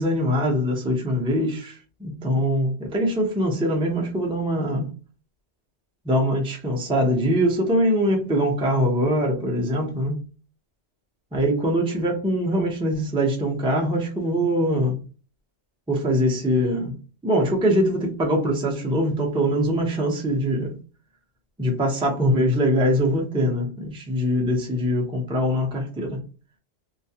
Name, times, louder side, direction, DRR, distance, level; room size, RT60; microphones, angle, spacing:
voice 1, 0.0-4.9 6.0-10.2 11.3-15.0 15.9-17.0 17.2-20.7 21.6-26.2, equal, 10° right, 0.3 m, -23 dB
2.3 x 2.1 x 2.7 m
omnidirectional pair, 1.3 m